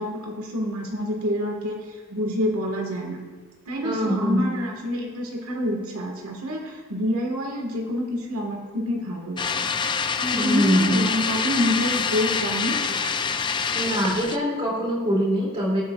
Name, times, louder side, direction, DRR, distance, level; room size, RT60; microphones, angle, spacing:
voice 1, 0.0-1.8 2.1-3.2 3.7-9.5 10.2-12.8, equal, 85° right, 0 dB, 1.6 m, -27 dB
voice 2, 3.8-4.6 10.4-11.0 13.7-15.8, equal, 25° right, -3 dB, 2.5 m, -23 dB
sound 1, 9.4-14.4, left 6 dB, 20° left, 0.3 m, -26 dB
19.0 x 8.2 x 2.3 m, 1.4 s
head